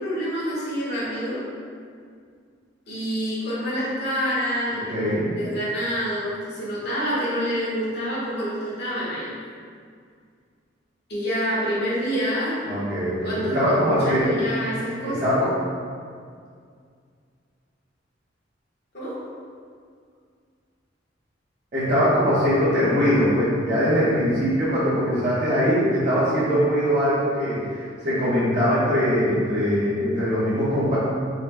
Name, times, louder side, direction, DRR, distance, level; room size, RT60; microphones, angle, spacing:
voice 1, 0.0-1.4 2.9-9.3 11.1-12.5 13.2-15.4 18.9-19.2, equal, 60° left, -8 dB, 1.5 m, -27 dB
voice 2, 4.7-5.3 12.6-14.2 15.2-15.5 21.7-31.0, equal, 40° right, -13 dB, 1.2 m, -22 dB
5.1 x 3.9 x 2.3 m, 2.1 s
head